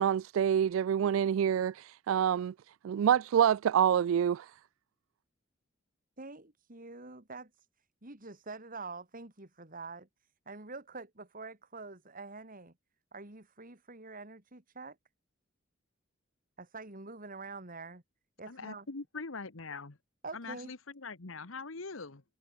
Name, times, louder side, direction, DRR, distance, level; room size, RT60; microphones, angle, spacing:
voice 1, 0.0-2.5 2.8-4.5, right 9 dB, 75° right, 0.3 m, -27 dB
voice 2, 6.2-7.7 8.0-10.1 10.5-12.7 13.1-15.0 16.6-18.0 18.4-18.9 20.2-20.7, right 3 dB, 45° right, 3.4 m, -46 dB
voice 3, 18.5-20.0 20.3-22.2, left 4 dB, 80° left, 1.4 m, -42 dB
head